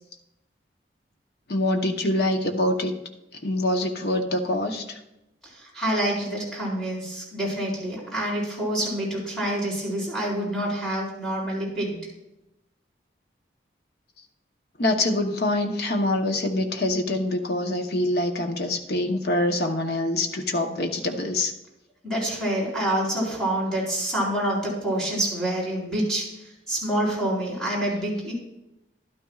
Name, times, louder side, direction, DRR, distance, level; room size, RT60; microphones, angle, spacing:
voice 1, 1.5-2.9 3.4-5.0 14.8-21.5, left 1 dB, 60° left, 4 dB, 0.9 m, -25 dB
voice 2, 5.4-12.0 22.0-28.3, right 1 dB, 5° left, -6 dB, 4.2 m, -27 dB
12.5 x 11.5 x 2.4 m, 0.91 s
head